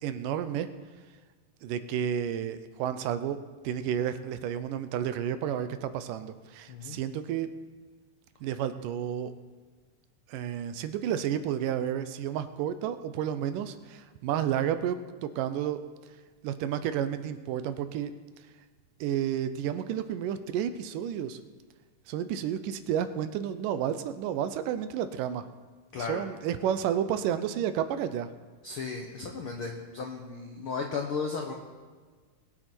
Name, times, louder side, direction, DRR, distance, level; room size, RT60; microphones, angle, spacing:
voice 1, 0.0-0.7 1.6-3.4 3.6-7.5 8.4-9.3 10.3-15.8 16.4-18.1 19.0-21.4 22.1-25.5 26.0-28.3, right 9 dB, 80° right, 11 dB, 2.2 m, -31 dB
voice 2, 6.7-7.0 25.9-26.2 28.6-31.5, left 5 dB, 80° left, 2 dB, 1.2 m, -35 dB
20.5 x 8.4 x 4.4 m, 1.5 s
omnidirectional pair, 3.9 m